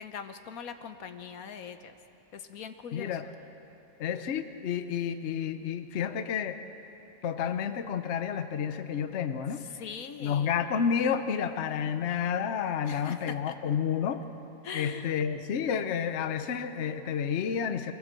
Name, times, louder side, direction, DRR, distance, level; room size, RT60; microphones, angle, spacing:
voice 1, 0.0-1.9 2.3-3.2 9.7-10.6 12.8-13.6 14.6-15.1, left 7 dB, 70° left, 9 dB, 1.2 m, -41 dB
voice 2, 2.9-3.3 4.0-6.6 7.2-9.6 10.2-14.2 14.7-17.9, left 7 dB, 55° left, 9 dB, 1.0 m, -30 dB
22.5 x 15.5 x 7.6 m, 3.0 s
omnidirectional pair, 1.6 m